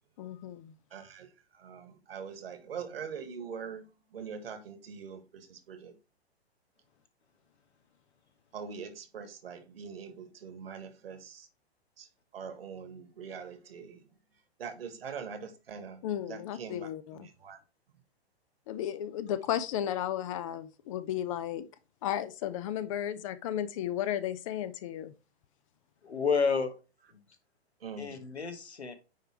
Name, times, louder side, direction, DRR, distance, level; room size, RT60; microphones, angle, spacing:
voice 1, 0.2-0.7 16.0-17.3 18.7-21.6 22.0-25.1, left 11 dB, 30° left, 0.5 m, -34 dB
voice 2, 0.9-5.9 8.5-11.5 12.0-14.1 14.6-17.6 27.8-28.2, right 6 dB, 65° right, 1.7 m, -43 dB
voice 3, 26.0-26.8 27.1-27.2 28.0-28.9, left 5 dB, 80° left, 1.4 m, -30 dB
9.2 x 3.3 x 4.4 m
figure-of-eight pair, 115°, 32 cm